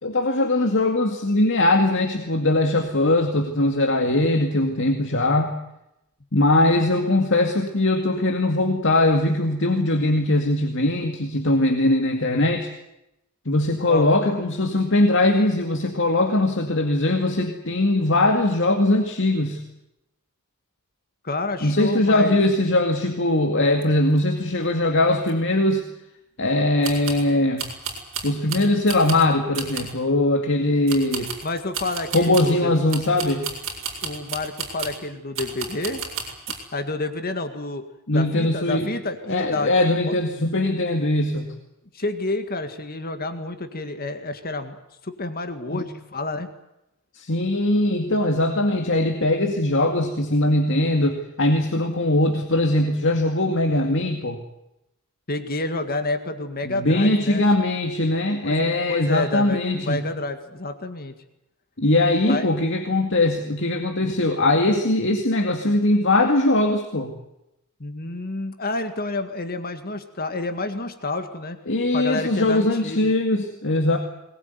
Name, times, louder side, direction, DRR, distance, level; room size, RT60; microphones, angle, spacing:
voice 1, 0.0-5.5 6.3-12.7 13.5-19.6 21.6-25.8 26.4-27.6 28.2-31.3 32.1-33.5 38.1-38.9 39.3-41.5 45.7-45.8 47.1-54.4 56.6-60.0 61.8-67.1 71.7-74.0, left 1 dB, 60° left, 3 dB, 2.2 m, -21 dB
voice 2, 21.2-22.4 31.4-32.7 34.0-36.0 36.7-37.8 38.1-39.7 40.1-40.2 41.9-44.8 45.0-46.5 55.3-57.4 58.4-61.1 62.1-62.5 63.9-64.2 67.8-71.6 71.9-73.1, left 2 dB, 45° left, 8 dB, 1.9 m, -29 dB
sound 1, 23.8-23.9 24.1-24.2 24.6-24.7 25.2-25.3 26.8-27.3 27.6-29.3 29.5-30.0 30.9-32.6 32.9-35.0 35.3-36.6, right 5 dB, 60° right, 5.4 m, -33 dB
22.0 x 20.5 x 9.5 m, 0.86 s
head